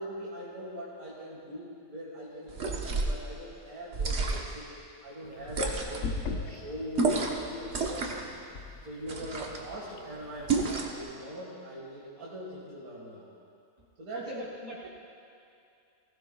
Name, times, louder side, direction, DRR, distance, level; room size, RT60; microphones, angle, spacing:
voice 1, 0.0-4.7 5.0-7.2 7.5-8.3 8.8-13.3 14.0-14.5, equal, 80° right, -6 dB, 2.3 m, -42 dB
sound 1, 2.5-3.2 3.9-4.6 5.5-6.1 6.9-7.4 7.7-8.3 9.1-9.6 10.5-11.0, right 3 dB, 50° right, 1.3 m, -30 dB
sound 2, 5.2-10.6, left 3 dB, 60° left, 1.0 m, -41 dB
voice 2, 14.1-14.9, right 2 dB, 30° right, -5 dB, 1.1 m, -42 dB
19.5 x 16.0 x 2.3 m, 2.5 s
omnidirectional pair, 1.5 m